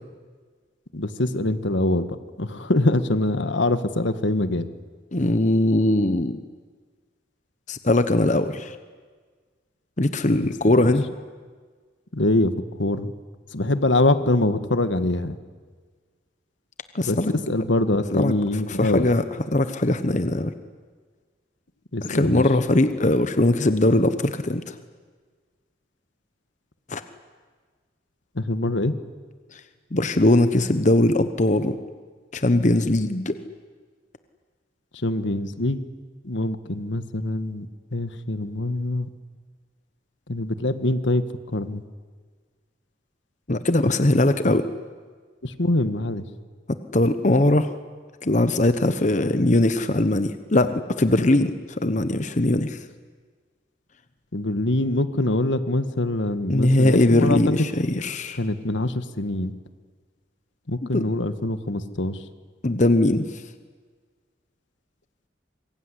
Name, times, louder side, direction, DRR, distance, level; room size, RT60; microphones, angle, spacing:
voice 1, 0.9-2.1 2.4-4.7 10.4-10.5 10.8-10.9 12.1-12.5 12.8-13.1 13.5-15.4 17.0-19.1 21.9-22.4 28.3-28.9 34.9-35.8 36.2-37.7 37.9-39.1 40.3-41.2 41.5-41.8 45.4-46.2 54.3-57.4 58.4-59.5 60.7-62.2, left 2 dB, 80° left, 11 dB, 1.6 m, -24 dB
voice 2, 5.1-6.4 7.7-8.8 10.0-11.0 16.9-17.3 18.1-18.3 18.7-19.2 19.5-20.5 22.0-24.7 26.9-27.0 29.9-31.7 32.3-33.4 43.5-44.7 46.9-47.7 48.2-51.5 51.8-52.8 56.5-58.4 60.9-61.0 62.6-63.2, left 1 dB, 40° left, 10 dB, 1.1 m, -20 dB
25.5 x 22.5 x 10.0 m, 1.5 s
head